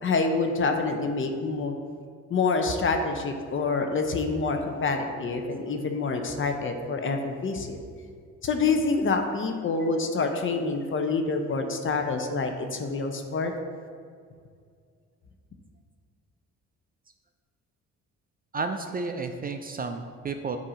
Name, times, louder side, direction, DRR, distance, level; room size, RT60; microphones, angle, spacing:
voice 1, 0.0-1.7 2.3-7.8 8.4-13.5, left 4 dB, 40° left, 5 dB, 0.7 m, -27 dB
voice 2, 18.5-20.6, right 4 dB, 30° right, 6 dB, 0.4 m, -32 dB
7.8 x 2.7 x 4.9 m, 2.1 s
cardioid pair, 90°, 30 cm